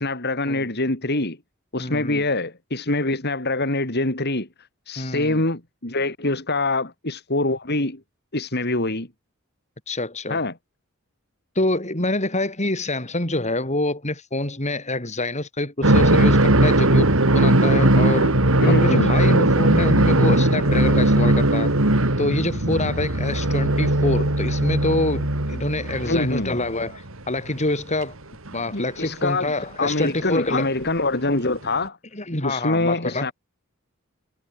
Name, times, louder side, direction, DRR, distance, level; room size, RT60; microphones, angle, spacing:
voice 1, 0.0-1.4 1.7-4.5 4.9-8.0 8.3-9.1 10.3-10.5 18.6-19.5 26.1-26.6 28.7-29.5 29.8-32.0 32.4-33.3, left 2 dB, 50° left, 4.5 m, -24 dB
voice 2, 1.8-2.2 5.0-5.4 9.9-10.4 11.6-18.3 18.7-21.7 22.2-28.1 28.5-30.7 32.1-33.3, left 2 dB, 35° left, 7.5 m, -26 dB
sound 1, 15.8-26.8 27.1-27.2 28.5-28.6 30.0-30.1 31.6-31.7, right 1 dB, 70° right, 3.2 m, -19 dB
head